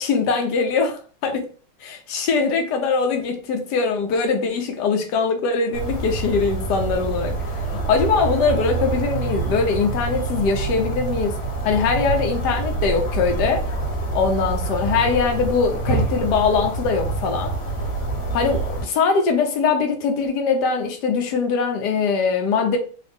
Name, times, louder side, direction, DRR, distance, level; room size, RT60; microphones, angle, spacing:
voice 1, 0.0-1.5 1.8-7.6 7.9-13.7 14.1-17.5 18.3-22.8, left 5 dB, 65° left, 1.2 m, -22 dB
sound 1, 5.7-18.8, right 3 dB, 80° left, 1.9 m, -26 dB
3.8 x 2.4 x 3.5 m
omnidirectional pair, 2.4 m